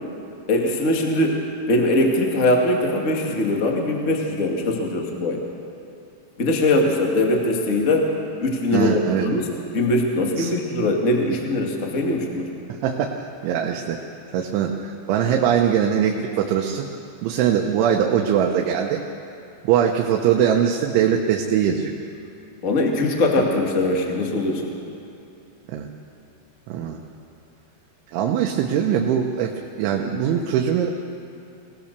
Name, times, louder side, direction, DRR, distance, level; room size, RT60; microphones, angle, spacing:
voice 1, 0.5-1.4 1.7-5.4 6.4-8.1 8.4-12.5 22.6-24.7, left 2 dB, 30° left, 0 dB, 1.3 m, -21 dB
voice 2, 8.7-9.3 10.4-10.5 12.7-14.0 14.3-16.9 17.2-19.0 19.7-21.9 25.7-25.9 26.7-27.0 28.1-29.5 29.8-30.9, right 8 dB, 85° right, 1 dB, 3.5 m, -21 dB
25.0 x 18.5 x 6.8 m, 2.6 s
omnidirectional pair, 5.3 m